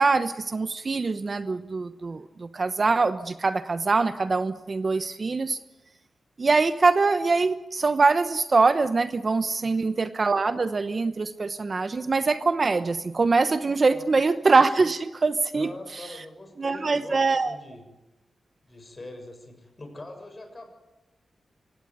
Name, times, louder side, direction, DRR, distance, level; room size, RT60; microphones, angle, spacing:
voice 1, 0.0-5.6 6.4-15.7 16.6-17.6, right 4 dB, 40° right, 11 dB, 1.0 m, -23 dB
voice 2, 13.9-14.2 15.5-17.8 18.7-20.7, left 2 dB, 30° left, 5 dB, 6.6 m, -42 dB
25.5 x 17.5 x 9.5 m, 1.0 s
wide cardioid pair, 125°, 0 cm